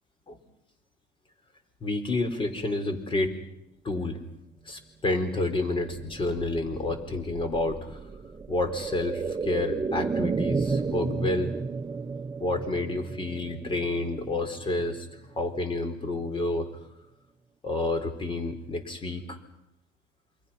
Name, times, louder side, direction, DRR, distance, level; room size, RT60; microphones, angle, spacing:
voice 1, 1.8-3.3 3.8-4.2 4.6-8.0 8.5-11.5 12.4-15.1 15.4-16.7 17.6-19.4, left 2 dB, 30° left, 7 dB, 4.5 m, -29 dB
sound 1, 5.7-15.4 15.8-15.9, right 4 dB, 25° right, 1.2 m, -33 dB
28.5 x 24.0 x 5.9 m, 0.84 s
cardioid pair, 110°, 17 cm